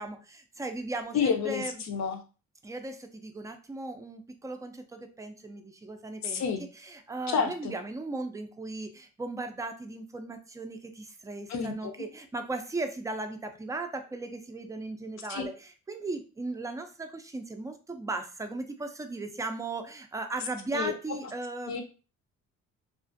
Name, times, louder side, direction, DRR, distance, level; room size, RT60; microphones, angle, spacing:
voice 1, 0.0-1.8 2.6-6.4 6.8-21.8, right 2 dB, 10° right, 6 dB, 0.4 m, -37 dB
voice 2, 1.1-2.2 6.2-6.7 7.3-7.7 11.5-11.9 15.3-15.4 20.7-20.9 21.6-21.8, left 6 dB, 65° left, 6 dB, 0.6 m, -29 dB
2.4 x 2.4 x 2.5 m, 0.35 s
cardioid pair, 90°, 30 cm